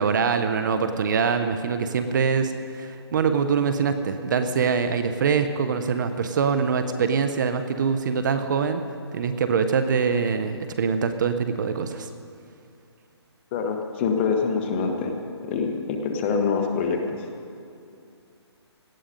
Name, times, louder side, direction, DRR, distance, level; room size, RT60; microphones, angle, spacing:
voice 1, 0.0-8.8 9.1-12.1, right 6 dB, 45° right, 9 dB, 0.8 m, -24 dB
voice 2, 13.5-15.1 15.5-17.3, left 5 dB, 25° left, 4 dB, 1.2 m, -25 dB
18.0 x 12.0 x 5.2 m, 2.5 s
hypercardioid pair, 155°, 15 cm